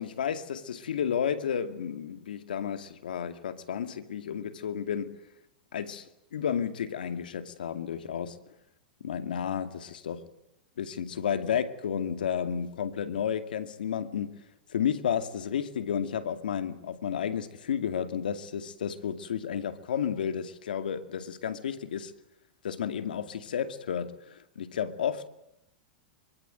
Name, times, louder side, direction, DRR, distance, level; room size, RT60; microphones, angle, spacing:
voice 1, 0.0-5.1 5.7-6.0 6.3-8.4 9.0-10.2 10.8-14.4 14.7-22.1 22.6-25.3, left 8 dB, 80° left, 2.4 m, -32 dB
24.0 x 23.0 x 9.1 m
hypercardioid pair, 115°, 5 cm